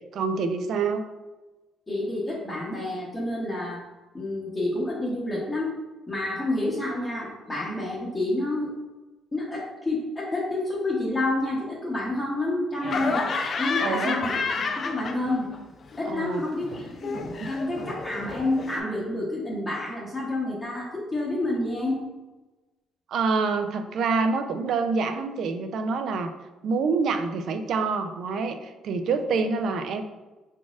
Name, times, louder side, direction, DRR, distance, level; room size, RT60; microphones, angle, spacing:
voice 1, 0.1-1.0 13.8-14.2 16.1-16.4 17.4-17.5 23.1-26.3 26.6-30.0, right 4 dB, 60° right, 7 dB, 0.4 m, -26 dB
voice 2, 1.9-3.8 4.1-5.8 6.1-8.7 9.3-13.2 13.6-15.4 16.0-17.2 17.4-22.0, left 2 dB, 20° left, -6 dB, 0.8 m, -29 dB
Laughter, 12.8-15.6 15.9-18.8, left 4 dB, 40° left, 0.4 m, -30 dB
4.8 x 4.1 x 2.4 m, 1.2 s
cardioid pair, 130°, 0 cm